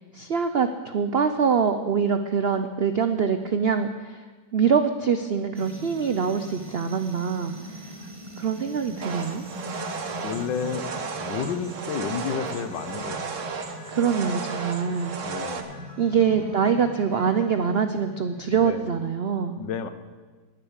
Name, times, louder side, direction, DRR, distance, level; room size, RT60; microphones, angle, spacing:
voice 1, 0.0-4.2 4.5-7.9 8.4-9.4 13.9-15.2 16.0-19.6, right 6 dB, 80° right, 9 dB, 0.5 m, -24 dB
sound 1, 5.5-18.8, equal, 20° right, 0.9 m, -42 dB
sound 2, 9.0-15.6, right 5 dB, 50° right, 1.3 m, -34 dB
voice 2, 10.2-13.6 15.2-16.0 16.3-16.5 18.5-18.9 19.6-19.9, left 7 dB, 75° left, 11 dB, 1.6 m, -32 dB
Piano, 12.0-18.8, left 1 dB, 20° left, 3.3 m, -50 dB
19.0 x 6.9 x 8.1 m, 1.4 s
omnidirectional pair, 2.0 m